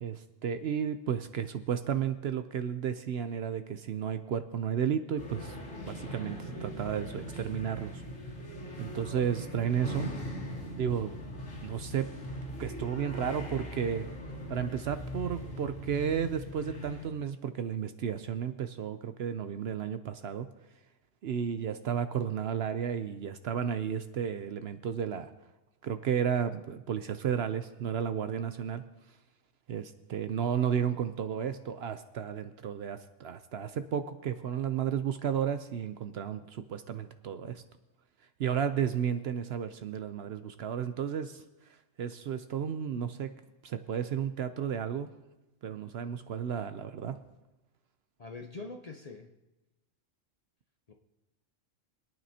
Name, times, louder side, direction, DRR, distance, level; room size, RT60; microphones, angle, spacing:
voice 1, 0.0-5.6 5.9-8.0 8.8-10.1 10.8-11.1 11.6-12.1 12.6-14.1 14.5-20.5 21.2-25.3 25.8-28.8 29.7-37.6 38.4-41.4 42.0-43.3 43.6-45.1 45.6-47.2, right 8 dB, 60° right, 10 dB, 0.7 m, -33 dB
sound 1, 5.2-17.1, equal, 75° left, 2.8 m, -40 dB
voice 2, 48.2-49.4 50.9-51.0, left 3 dB, 40° left, 4 dB, 0.6 m, -44 dB
24.5 x 9.1 x 2.8 m, 1.0 s
omnidirectional pair, 1.3 m